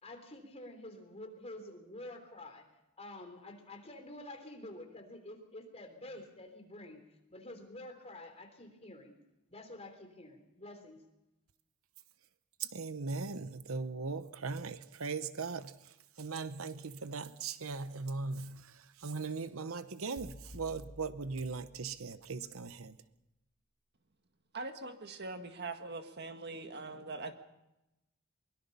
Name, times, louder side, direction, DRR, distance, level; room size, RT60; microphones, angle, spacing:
voice 1, 0.0-2.7 3.0-9.2 9.5-11.0, left 1 dB, 30° left, 3.5 m, -49 dB
voice 2, 12.6-23.0, right 4 dB, 80° right, 0.9 m, -39 dB
sound 1, 20.2-22.3, equal, 80° left, 2.6 m, -52 dB
voice 3, 24.5-27.3, right 3 dB, 55° right, 1.7 m, -42 dB
23.0 x 22.0 x 5.5 m
head